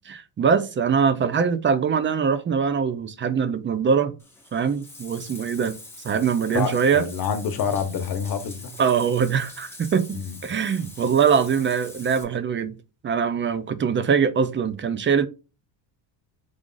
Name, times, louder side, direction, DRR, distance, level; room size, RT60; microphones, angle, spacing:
voice 1, 0.1-4.1 4.5-5.8 6.0-7.0 8.8-12.8 13.0-15.3, right 6 dB, 25° right, 0.4 m, -22 dB
Bathtub (filling or washing), 4.2-12.2, left 2 dB, 5° left, 1.2 m, -43 dB
voice 2, 6.5-8.7 10.1-10.3, left 7 dB, 45° left, 1.0 m, -27 dB
4.9 x 2.5 x 3.7 m
cardioid pair, 125°, 48 cm